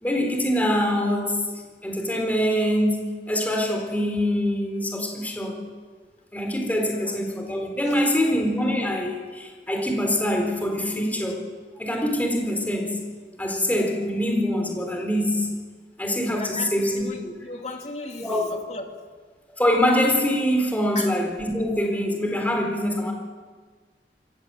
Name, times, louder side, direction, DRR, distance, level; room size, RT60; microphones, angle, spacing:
voice 1, 0.0-5.6 6.3-11.4 11.8-13.0 13.4-15.5 16.0-16.9 17.2-17.3 18.2-18.4 19.6-23.1, equal, 10° left, 2 dB, 4.0 m, -24 dB
voice 2, 16.4-18.9 20.8-21.1, left 2 dB, 40° left, 3 dB, 2.5 m, -37 dB
25.5 x 15.5 x 7.8 m, 1.5 s
head